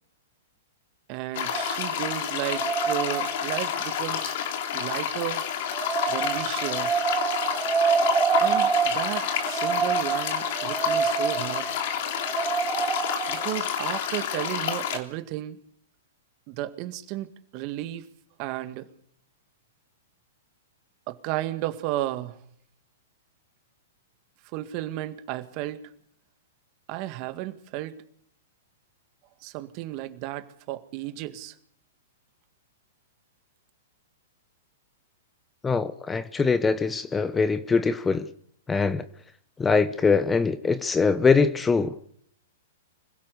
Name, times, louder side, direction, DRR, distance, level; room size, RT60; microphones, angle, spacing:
voice 1, 1.1-4.4 4.7-5.4 6.1-6.9 8.4-11.7 13.3-15.6 16.5-18.1 18.4-18.9 21.1-22.4 24.5-25.9 26.9-28.0 29.4-31.6, right 15 dB, 45° right, 1.9 m, -33 dB
sound 1, 1.3-15.0, left 8 dB, 55° left, 3.0 m, -29 dB
sound 2, 1.5-3.8 5.7-13.5, right 6 dB, 20° right, 5.6 m, -27 dB
voice 2, 35.6-38.3 38.7-39.0 39.6-42.0, left 4 dB, 15° left, 0.9 m, -23 dB
26.0 x 16.0 x 6.8 m
hypercardioid pair, 120°, 0 cm